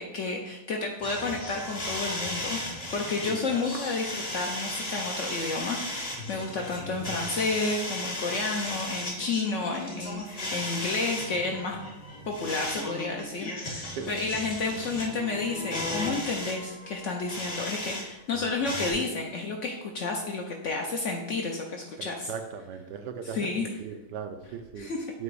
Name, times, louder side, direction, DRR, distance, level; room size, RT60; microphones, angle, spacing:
voice 1, 0.0-11.8 12.3-22.3 23.3-23.7 24.8-25.1, left 3 dB, 60° left, 2 dB, 0.8 m, -31 dB
sound 1, 1.0-18.0 18.3-18.9, left 1 dB, 30° left, 0.8 m, -36 dB
voice 2, 22.0-24.9 25.1-25.2, right 7 dB, 80° right, 7 dB, 1.2 m, -38 dB
7.7 x 2.9 x 4.7 m, 0.99 s
omnidirectional pair, 1.8 m